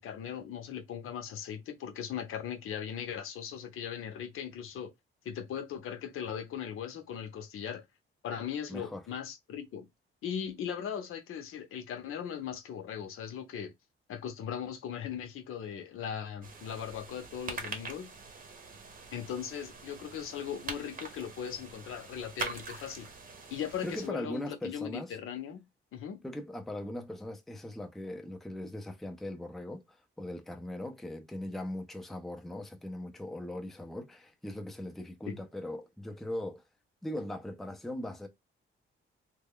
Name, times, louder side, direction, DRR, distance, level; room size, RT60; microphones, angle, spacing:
voice 1, 0.0-4.9 5.2-7.8 8.2-9.9 10.2-13.7 14.1-18.1 19.1-23.1 23.5-25.6 25.9-26.2 35.3-35.4, left 8 dB, 80° left, 0.8 m, -39 dB
voice 2, 8.7-9.0 23.8-25.1 26.2-36.6 37.0-38.3, left 1 dB, ahead, 0.4 m, -39 dB
sound 1, 16.4-24.1, right 4 dB, 40° right, 0.8 m, -44 dB
3.2 x 2.3 x 3.6 m
wide cardioid pair, 170°, 21 cm